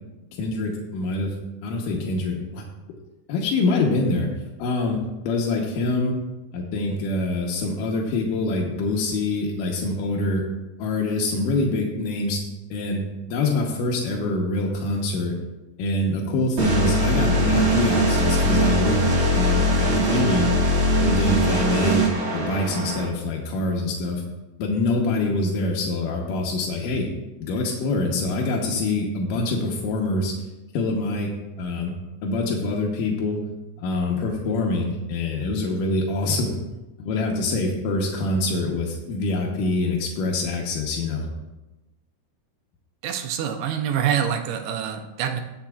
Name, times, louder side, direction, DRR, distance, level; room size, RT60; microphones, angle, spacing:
voice 1, 0.4-1.4 1.6-2.6 3.3-4.3 4.6-6.1 6.5-10.5 10.8-12.4 12.7-13.0 13.3-15.3 15.8-19.0 19.3-20.5 21.0-24.2 24.6-27.1 27.4-30.3 30.7-31.3 31.6-31.9 32.2-33.4 33.8-36.6 37.0-41.3, left 2 dB, 75° left, -1 dB, 2.0 m, -25 dB
sound 1, 16.6-23.1, equal, 50° right, 3.3 m, -21 dB
voice 2, 43.0-45.4, right 9 dB, 80° right, 5 dB, 2.7 m, -25 dB
19.5 x 7.1 x 2.4 m, 1.1 s
omnidirectional pair, 5.0 m